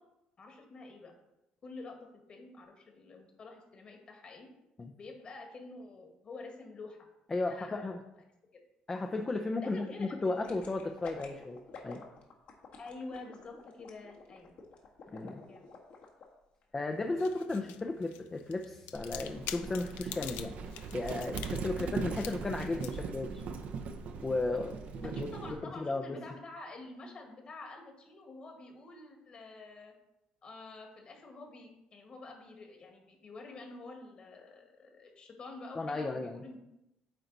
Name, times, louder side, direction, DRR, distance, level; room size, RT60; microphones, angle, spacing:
voice 1, 0.4-1.1 1.6-2.0 2.3-4.5 5.0-7.0 7.4-8.0 8.5-8.6 9.6-10.2 12.8-14.5 15.4-15.7 21.8-21.9 25.0-29.9 30.4-36.6, left 3 dB, 40° left, 3 dB, 1.7 m, -48 dB
voice 2, 7.3-8.0 8.9-12.0 15.1-15.4 16.7-20.5 20.9-23.4 24.2-26.0 35.8-36.4, left 2 dB, 20° left, 4 dB, 0.5 m, -35 dB
sound 1, 10.4-16.2 16.6-16.7, left 5 dB, 60° left, 1.5 m, -49 dB
sound 2, 16.9-25.4, left 12 dB, 90° left, 0.4 m, -48 dB
Livestock farm animals working animals, 18.9-25.6, right 5 dB, 60° right, 0.7 m, -40 dB
8.9 x 3.9 x 4.0 m, 0.87 s
cardioid pair, 105°, 3 cm